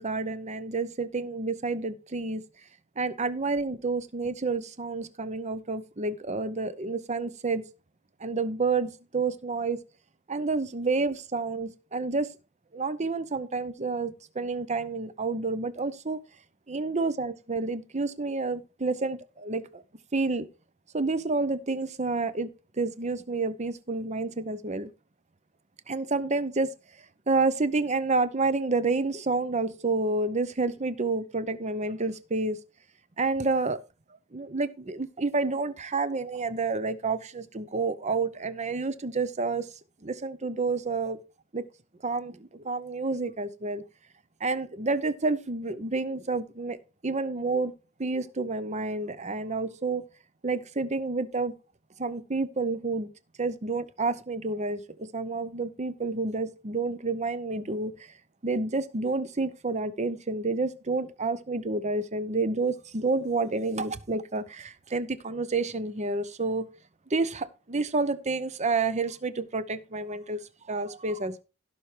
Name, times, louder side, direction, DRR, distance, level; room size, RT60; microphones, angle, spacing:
voice 1, 0.0-2.4 3.0-7.6 8.2-9.8 10.3-12.3 12.7-16.2 16.7-19.8 20.1-20.5 20.9-22.5 22.8-24.9 25.9-26.7 27.3-32.6 33.2-33.8 34.3-39.7 40.0-41.2 41.5-41.6 42.0-43.8 44.4-46.8 47.0-47.7 48.0-50.0 50.4-51.5 52.0-53.1 53.4-58.1 58.4-66.7 67.1-70.4 70.7-71.4, right 3 dB, 30° right, 0.8 m, -29 dB
16.5 x 5.9 x 3.3 m
head